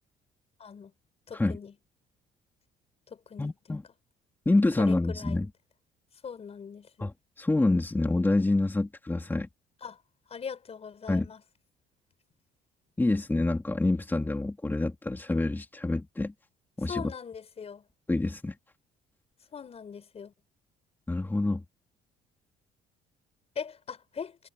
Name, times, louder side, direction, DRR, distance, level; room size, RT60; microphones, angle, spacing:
voice 1, 0.6-0.9 1.3-1.7 3.1-3.5 4.8-5.4 6.2-7.1 9.8-10.0 10.3-11.4 16.9-17.8 19.5-20.3 23.6-24.4, left 6 dB, 35° left, 5.6 m, -40 dB
voice 2, 3.4-3.8 4.4-5.5 7.0-9.5 11.1-11.3 13.0-16.3 16.8-17.0 18.1-18.6 21.1-21.6, left 2 dB, 10° left, 3.1 m, -27 dB
cardioid pair, 110°, 17 cm